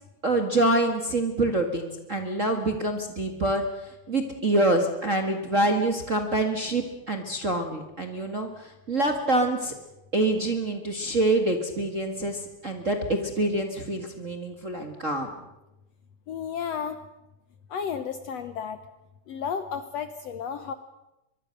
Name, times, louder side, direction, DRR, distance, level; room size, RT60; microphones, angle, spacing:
voice 1, 0.2-3.6 4.1-9.7 10.1-15.3, right 2 dB, 35° right, 4 dB, 1.4 m, -26 dB
voice 2, 16.3-17.0 17.7-18.8 19.3-20.7, left 7 dB, 65° left, 10 dB, 1.7 m, -32 dB
23.5 x 23.5 x 6.6 m, 0.96 s
omnidirectional pair, 3.8 m